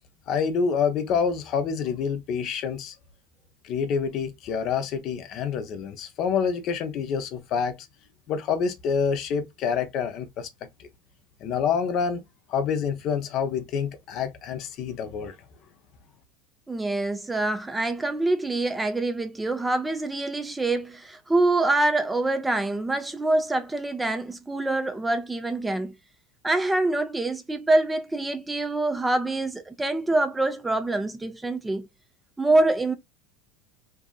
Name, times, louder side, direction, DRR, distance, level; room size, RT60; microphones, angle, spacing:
voice 1, 0.3-3.0 3.6-7.8 8.3-10.5 10.8-10.9 11.4-12.2 12.5-15.3, left 6 dB, 50° left, 0.6 m, -27 dB
voice 2, 16.7-26.0 26.4-31.9 32.4-32.9, right 2 dB, 10° right, 0.4 m, -25 dB
2.7 x 2.5 x 2.2 m
supercardioid pair, 105°, 0 cm